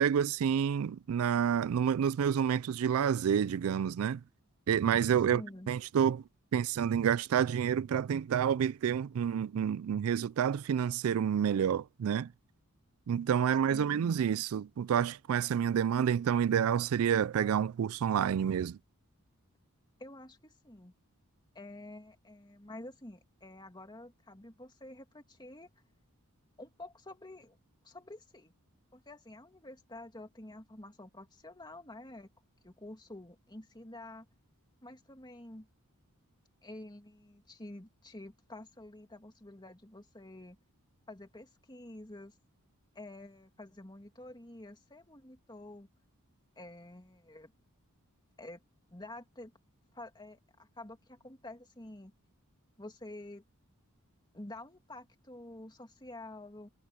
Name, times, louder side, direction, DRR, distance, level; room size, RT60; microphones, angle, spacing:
voice 1, 0.0-4.2 4.7-5.4 5.7-6.2 6.5-12.3 13.1-18.8, right 8 dB, 65° right, 0.3 m, -29 dB
voice 2, 5.3-5.7 13.7-14.1 20.0-20.9 21.5-25.7 26.6-27.6 27.8-28.5 28.9-32.3 32.6-34.3 34.8-35.7 36.6-40.6 41.1-42.3 42.9-45.9 46.6-47.5 48.4-48.6 48.9-49.5 49.9-52.1 52.8-53.4 54.3-56.7, left 1 dB, 20° left, 2.5 m, -49 dB
head